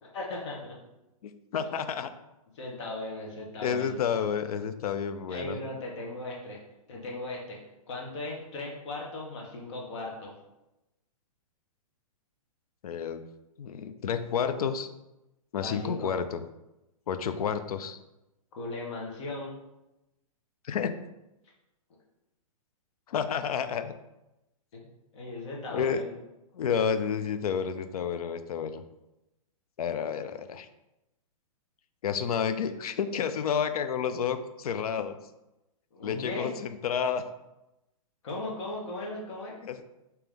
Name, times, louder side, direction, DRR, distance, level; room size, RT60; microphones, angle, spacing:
voice 1, 0.0-0.8 2.5-4.0 5.3-6.6 6.9-7.6 7.9-10.3 15.5-16.1 18.5-19.5 24.7-24.9 25.1-26.1 35.9-36.5 38.2-39.6, left 2 dB, 50° left, -1 dB, 1.1 m, -37 dB
voice 2, 1.2-2.1 3.6-5.6 12.8-13.2 13.6-14.9 15.5-16.4 17.1-18.0 20.6-20.9 23.1-23.9 25.7-26.0 26.5-28.8 29.8-30.7 32.0-35.2 36.0-37.2 39.6-39.8, left 7 dB, 80° left, 10 dB, 0.4 m, -30 dB
3.5 x 2.9 x 3.4 m, 0.95 s
hypercardioid pair, 155°, 19 cm